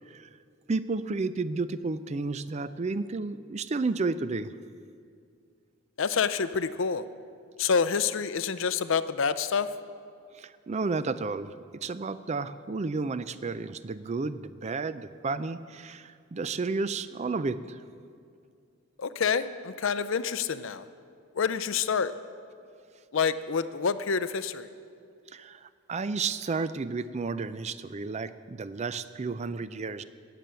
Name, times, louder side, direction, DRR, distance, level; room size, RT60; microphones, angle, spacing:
voice 1, 0.7-4.5 10.4-11.5 11.8-17.8 25.3-30.0, right 3 dB, 30° right, 14 dB, 0.4 m, -32 dB
voice 2, 6.0-7.0 7.6-9.7 19.0-20.8 21.3-22.1 23.1-24.7, left 6 dB, 65° left, 13 dB, 0.5 m, -27 dB
18.0 x 7.7 x 6.9 m, 2.3 s
head